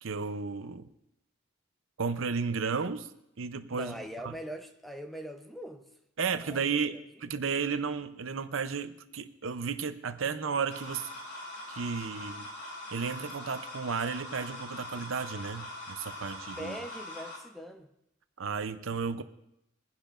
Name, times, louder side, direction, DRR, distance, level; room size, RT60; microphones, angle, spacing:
voice 1, 0.0-0.9 2.0-3.1 3.4-3.9 4.2-4.3 6.2-11.1 11.7-12.5 12.9-16.8 18.4-19.2, right 5 dB, 80° right, 11 dB, 0.6 m, -33 dB
voice 2, 3.7-5.9 6.2-7.0 16.6-17.9, equal, ahead, 5 dB, 0.7 m, -42 dB
sound 1, 10.7-17.4, left 1 dB, 55° left, 3.2 m, -42 dB
21.5 x 10.5 x 2.5 m, 0.81 s
head